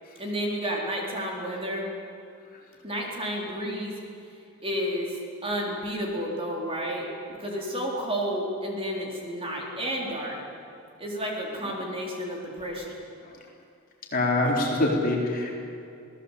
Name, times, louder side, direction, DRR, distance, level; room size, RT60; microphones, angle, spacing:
voice 1, 0.2-1.9 2.8-3.9 4.6-10.4 11.0-13.0, equal, 25° right, -2 dB, 4.3 m, -31 dB
voice 2, 14.1-15.6, left 2 dB, 45° left, -2 dB, 4.1 m, -24 dB
27.0 x 18.0 x 8.5 m, 2.6 s
head